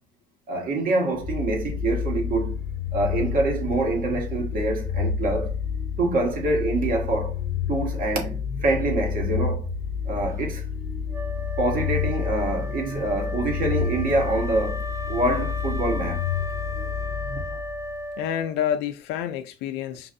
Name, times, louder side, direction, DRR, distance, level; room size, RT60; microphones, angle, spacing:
voice 1, 0.5-2.5 2.9-5.5 6.0-7.4 7.7-9.7 10.0-10.7 11.6-16.2 17.5-17.6, right 2 dB, 55° right, 1.4 m, -25 dB
sound 1, 1.2-18.0, left 7 dB, 20° left, 1.1 m, -29 dB
Wind instrument woodwind instrument, 11.1-18.7, left 1 dB, 20° right, 0.5 m, -36 dB
voice 2, 18.2-20.1, left 10 dB, 85° left, 0.4 m, -28 dB
6.0 x 2.4 x 2.5 m
cardioid pair, 110°, 17 cm